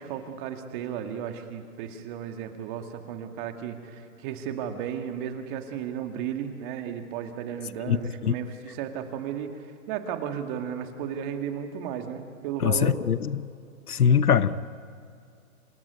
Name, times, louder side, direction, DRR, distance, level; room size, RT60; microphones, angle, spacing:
voice 1, 0.0-13.0, right 8 dB, 35° right, 6 dB, 2.3 m, -34 dB
voice 2, 12.6-13.5 13.9-14.6, left 8 dB, 85° left, 16 dB, 1.0 m, -22 dB
27.0 x 18.5 x 9.5 m, 2.4 s
hypercardioid pair, 140°, 44 cm